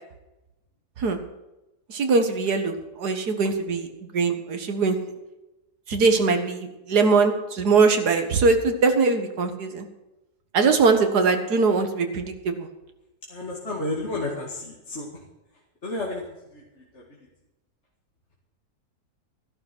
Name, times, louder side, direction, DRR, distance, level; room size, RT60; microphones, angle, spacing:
voice 1, 1.9-3.9 4.1-5.0 5.9-9.9 10.5-12.7, right 4 dB, 80° right, 7 dB, 2.1 m, -21 dB
voice 2, 13.3-15.1 15.8-16.2 16.5-16.6 16.9-17.0, left 2 dB, 45° left, -2 dB, 2.4 m, -31 dB
13.5 x 11.5 x 6.2 m, 0.98 s
omnidirectional pair, 1.7 m